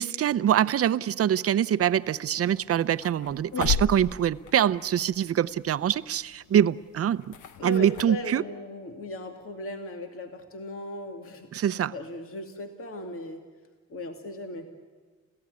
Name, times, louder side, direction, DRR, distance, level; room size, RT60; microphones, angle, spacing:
voice 1, 0.0-7.3 7.6-8.4 11.5-11.9, right 10 dB, 50° right, 0.7 m, -24 dB
sound 1, 1.8-8.0, left 6 dB, 80° left, 1.3 m, -37 dB
voice 2, 7.6-11.6 11.9-13.4 13.9-14.7, left 1 dB, 45° left, 2.4 m, -37 dB
29.5 x 16.0 x 9.6 m
cardioid pair, 90°, 30 cm